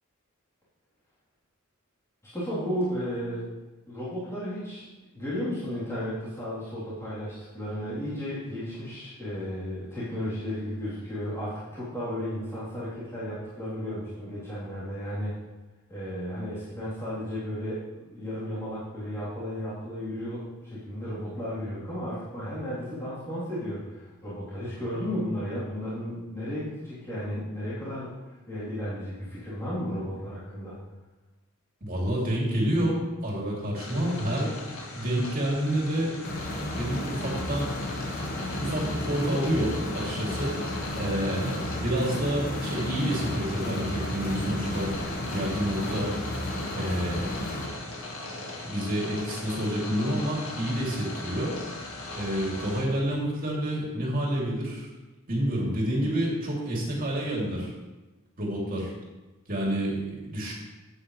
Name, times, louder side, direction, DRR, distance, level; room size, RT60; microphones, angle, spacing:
voice 1, 2.2-3.5 3.9-4.9 5.1-15.3 15.9-28.1 28.5-30.8 44.5-44.7, equal, 15° left, -12 dB, 3.4 m, -34 dB
voice 2, 31.8-34.5 34.9-36.1 36.8-37.7 38.6-40.6 40.9-44.9 45.3-46.1 46.7-47.5 48.6-54.9 55.3-57.7 58.4-58.9 59.5-60.5, right 1 dB, 40° right, -3 dB, 2.8 m, -29 dB
sound 1, 33.7-52.8, left 2 dB, 70° left, 1.8 m, -39 dB
sound 2, 36.2-47.7, left 1 dB, 45° left, 1.2 m, -33 dB
12.0 x 8.6 x 3.2 m, 1.1 s
head